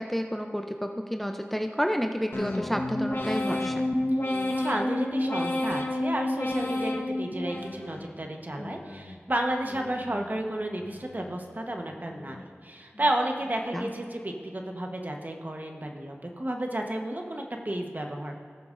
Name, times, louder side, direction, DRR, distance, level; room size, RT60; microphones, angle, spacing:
voice 1, 0.0-3.8 13.7-13.9, equal, 5° left, 4 dB, 0.6 m, -30 dB
sound 1, 2.3-8.2 8.6-9.2 9.7-10.3 10.8-11.4 11.9-12.5 13.0-13.5, left 1 dB, 50° left, 1.1 m, -31 dB
voice 2, 4.2-18.3, right 1 dB, 40° right, 2 dB, 1.1 m, -32 dB
18.0 x 7.0 x 2.6 m, 2.1 s
wide cardioid pair, 45°, 5 cm